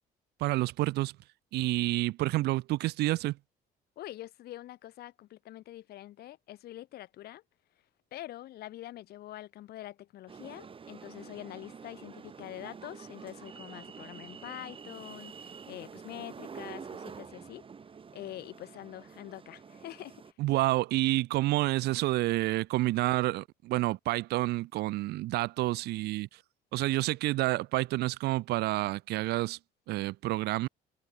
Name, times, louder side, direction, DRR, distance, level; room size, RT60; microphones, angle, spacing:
voice 1, 0.4-1.2 1.5-3.4 20.4-26.3 26.7-29.6 29.9-30.7, right 18 dB, 75° right, 0.5 m, -29 dB
voice 2, 4.0-7.4 8.1-17.6 18.1-20.3, left 14 dB, 70° left, 1.6 m, -45 dB
sound 1, 10.3-20.3, right 6 dB, 30° right, 2.6 m, -47 dB
cardioid pair, 110°, 17 cm